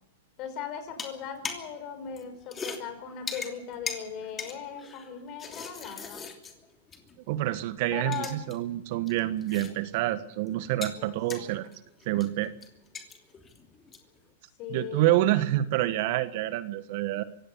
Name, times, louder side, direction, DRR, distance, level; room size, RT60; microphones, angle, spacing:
voice 1, 0.4-6.2 7.9-8.4 11.0-11.5 14.6-15.1, left 7 dB, 40° left, 9 dB, 5.4 m, -39 dB
sound 1, 0.9-1.8 2.0-7.2 7.5-7.6 8.0-8.6 8.8-10.1 10.3-14.2, left 5 dB, 20° left, 2.9 m, -41 dB
voice 2, 7.3-11.7 12.0-12.5 14.7-17.2, right 14 dB, 55° right, 13 dB, 1.4 m, -27 dB
24.0 x 16.5 x 7.0 m, 0.83 s
hypercardioid pair, 125°, 0 cm